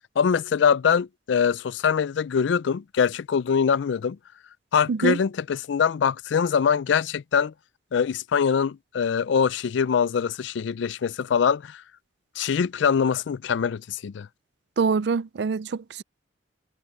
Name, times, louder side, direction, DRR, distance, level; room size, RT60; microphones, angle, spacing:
voice 1, 0.2-4.2 4.7-7.5 7.9-11.8 12.4-14.3, left 6 dB, 70° left, 0.4 m, -23 dB
voice 2, 14.8-16.0, right 5 dB, 60° right, 0.4 m, -25 dB
head